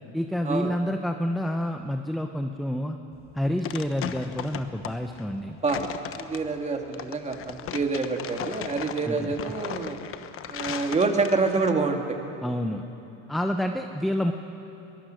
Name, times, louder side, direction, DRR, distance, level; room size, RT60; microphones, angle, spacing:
voice 1, 0.1-3.0 3.3-5.6 9.0-9.3 12.4-12.8 13.3-14.3, equal, ahead, 5 dB, 0.8 m, -28 dB
sound 1, 3.1-11.7, left 9 dB, 45° left, 1.1 m, -37 dB
voice 2, 6.2-10.0 10.5-12.2, right 4 dB, 20° right, 4 dB, 2.1 m, -27 dB
23.0 x 20.5 x 6.5 m, 3.0 s
cardioid pair, 115°, 31 cm